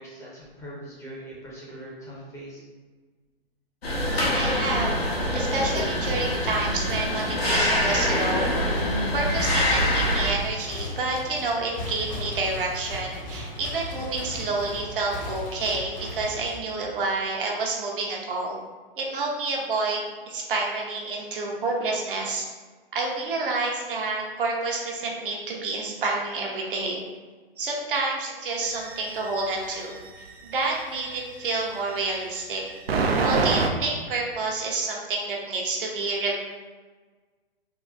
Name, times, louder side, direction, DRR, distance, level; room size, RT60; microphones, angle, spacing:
voice 1, 0.0-2.6, right 1 dB, 10° left, -6 dB, 0.6 m, -41 dB
sound 1, 3.8-10.3, left 1 dB, 80° left, 0.9 m, -25 dB
voice 2, 4.1-8.5 9.1-18.6 19.0-20.0 20.3-22.5 22.9-27.0 27.6-32.6 33.2-36.4, right 3 dB, 60° right, -1 dB, 0.8 m, -29 dB
sound 2, 5.9-17.0, left 1 dB, 45° left, 0.9 m, -37 dB
sound 3, 28.6-31.1 31.9-33.7, right 4 dB, 90° right, 0.5 m, -26 dB
3.8 x 2.1 x 2.4 m, 1.4 s
figure-of-eight pair, 120°, 30 cm